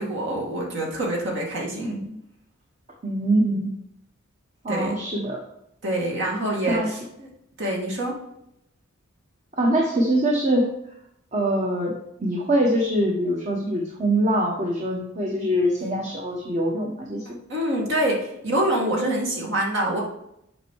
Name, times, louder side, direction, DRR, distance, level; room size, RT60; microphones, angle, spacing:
voice 1, 0.0-2.0 4.7-5.0 5.8-7.3 7.6-8.2 17.3-20.0, right 1 dB, 65° right, -2 dB, 2.3 m, -26 dB
voice 2, 1.7-2.2 3.0-3.7 4.6-5.4 6.7-6.9 9.6-10.7 11.3-17.4, right 1 dB, 35° right, 0 dB, 1.1 m, -23 dB
7.7 x 5.3 x 4.7 m, 0.78 s
head